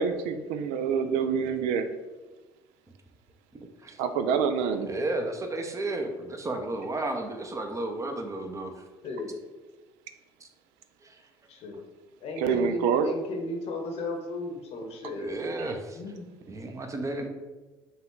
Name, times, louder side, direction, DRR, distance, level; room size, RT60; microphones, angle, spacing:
voice 1, 0.0-1.9 4.0-4.9 12.4-13.1, right 6 dB, 65° right, 9 dB, 0.4 m, -26 dB
voice 2, 3.5-4.0 4.8-8.7 10.4-10.5 11.0-11.2 15.2-16.0 16.5-17.3, right 2 dB, 25° right, 5 dB, 0.7 m, -33 dB
voice 3, 12.2-15.4 15.9-16.3, left 2 dB, 55° left, 3 dB, 0.9 m, -35 dB
5.5 x 2.4 x 3.8 m, 1.2 s
hypercardioid pair, 60°, 13 cm